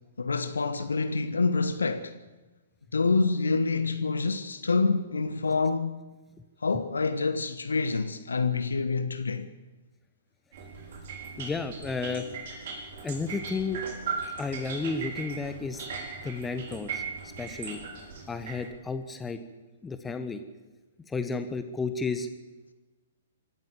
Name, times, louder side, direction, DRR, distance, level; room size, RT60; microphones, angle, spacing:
voice 1, 0.2-2.1 2.9-6.0 6.6-9.5, left 4 dB, 70° left, 1.2 m, -27 dB
sound 1, 10.5-18.7, right 5 dB, 50° right, 4.7 m, -38 dB
voice 2, 11.4-12.3 13.0-13.8 14.4-15.8 16.2-17.0 17.4-17.8 18.3-19.4 19.8-20.4 21.1-22.3, left 4 dB, 10° left, 1.3 m, -32 dB
25.0 x 14.0 x 7.7 m
figure-of-eight pair, 115°, 0 cm